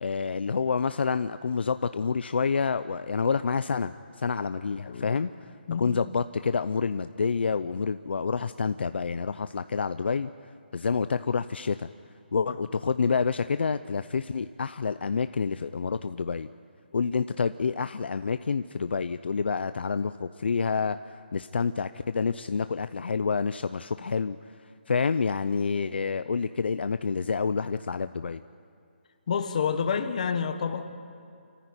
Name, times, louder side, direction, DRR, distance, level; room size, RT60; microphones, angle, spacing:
voice 1, 0.0-5.3 5.8-10.3 10.7-11.9 12.3-16.5 16.9-24.4 24.9-28.4, left 5 dB, 65° left, 11 dB, 0.6 m, -28 dB
voice 2, 4.8-5.2 5.7-6.0 29.3-30.9, left 6 dB, 40° left, 8 dB, 1.4 m, -29 dB
27.0 x 14.5 x 9.6 m, 2.3 s
hypercardioid pair, 170°, 6 cm